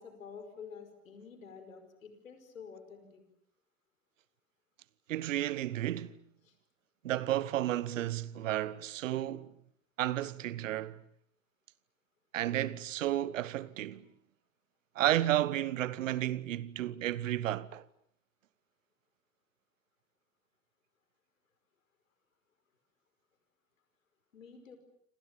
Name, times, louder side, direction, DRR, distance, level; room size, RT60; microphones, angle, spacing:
voice 1, 0.0-3.2 6.4-6.5 24.3-24.8, left 6 dB, 80° left, 5.3 m, -49 dB
voice 2, 5.1-6.2 7.0-9.5 10.0-11.0 12.3-14.1 14.9-17.8, right 13 dB, 70° right, 1.2 m, -32 dB
28.5 x 26.0 x 7.3 m
figure-of-eight pair, 75°, 39 cm